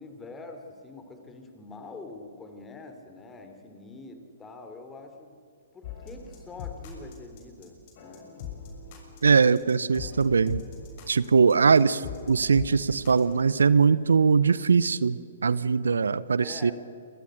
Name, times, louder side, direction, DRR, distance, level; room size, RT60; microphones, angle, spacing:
voice 1, 0.0-5.3 5.7-8.3 16.4-16.7, left 3 dB, 15° left, 6 dB, 3.7 m, -45 dB
sound 1, 5.8-13.3, left 7 dB, 45° left, 6.9 m, -41 dB
voice 2, 9.2-10.6 11.1-16.7, right 5 dB, 75° right, 18 dB, 0.8 m, -21 dB
29.5 x 23.5 x 6.7 m, 2.5 s
figure-of-eight pair, 120°, 0 cm